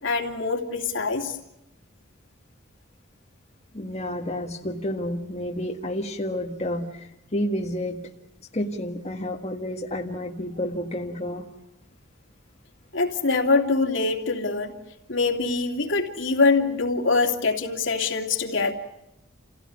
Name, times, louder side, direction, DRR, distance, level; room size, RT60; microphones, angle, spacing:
voice 1, 0.0-1.4 12.9-14.8 15.1-18.7, left 3 dB, 65° left, 2 dB, 2.8 m, -24 dB
voice 2, 3.7-8.0 8.5-11.5, left 1 dB, 30° left, 0 dB, 1.7 m, -30 dB
29.5 x 16.5 x 9.7 m, 0.88 s
head